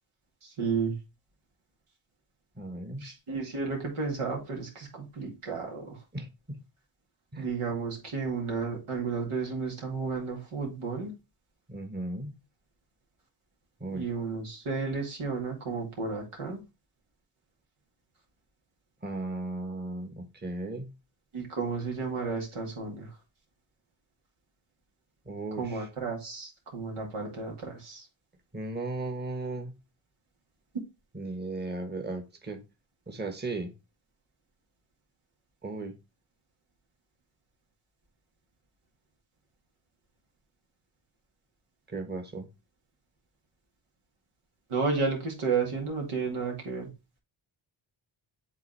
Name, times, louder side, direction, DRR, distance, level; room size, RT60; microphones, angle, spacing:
voice 1, 0.6-1.0 3.0-6.0 7.4-11.1 13.9-16.6 21.3-23.1 25.6-28.0 44.7-46.9, right 4 dB, 85° right, 2.2 m, -32 dB
voice 2, 2.5-3.1 6.1-6.6 7.3-7.5 11.7-12.4 13.8-14.1 19.0-20.9 25.2-25.9 28.5-29.8 31.1-32.6 33.1-33.7 35.6-36.0 41.9-42.5, right 2 dB, 20° right, 1.3 m, -36 dB
8.2 x 3.6 x 3.2 m
cardioid pair, 65°, 49 cm